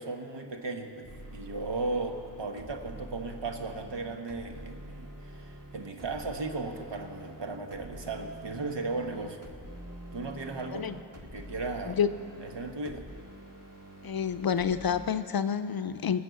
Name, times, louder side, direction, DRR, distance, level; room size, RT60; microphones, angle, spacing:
voice 1, 0.0-9.4 10.1-10.9 11.2-12.0 12.4-13.0, right 3 dB, 85° right, 5 dB, 1.2 m, -36 dB
sound 1, 1.0-15.1, right 1 dB, 35° right, 1.8 m, -46 dB
voice 2, 14.0-16.2, left 7 dB, 60° left, 11 dB, 0.5 m, -28 dB
19.0 x 7.6 x 6.9 m, 2.4 s
wide cardioid pair, 50°, 42 cm